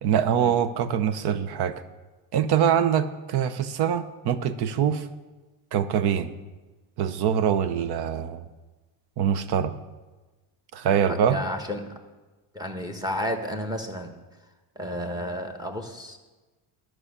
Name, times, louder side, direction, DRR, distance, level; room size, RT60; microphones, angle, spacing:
voice 1, 0.0-1.7 2.3-5.1 5.7-6.3 7.0-8.4 9.2-9.7 10.7-11.4, right 8 dB, 55° right, 13 dB, 0.8 m, -24 dB
voice 2, 11.1-12.0 12.5-14.1 14.7-16.2, equal, 10° right, 5 dB, 1.2 m, -32 dB
11.0 x 6.2 x 6.8 m, 1.2 s
cardioid pair, 110°, 48 cm